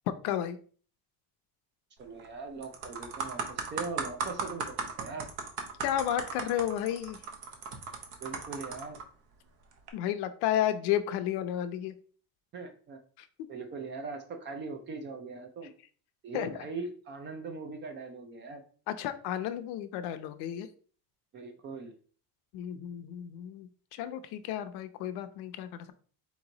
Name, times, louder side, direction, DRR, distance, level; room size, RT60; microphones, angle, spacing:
voice 1, 0.1-0.6 5.8-7.2 9.9-11.9 13.2-13.5 16.3-16.5 18.9-20.7 22.5-25.9, left 11 dB, 70° left, 10 dB, 0.7 m, -32 dB
voice 2, 2.0-5.3 8.2-9.0 12.5-13.0 13.5-15.7 16.2-18.6 21.3-22.0, right 4 dB, 30° right, 6 dB, 0.4 m, -40 dB
sound 1, 2.0-2.3 2.6-9.0 9.7-9.9, right 5 dB, 60° right, 1.0 m, -37 dB
4.4 x 3.0 x 3.8 m, 0.43 s
cardioid pair, 180°, 41 cm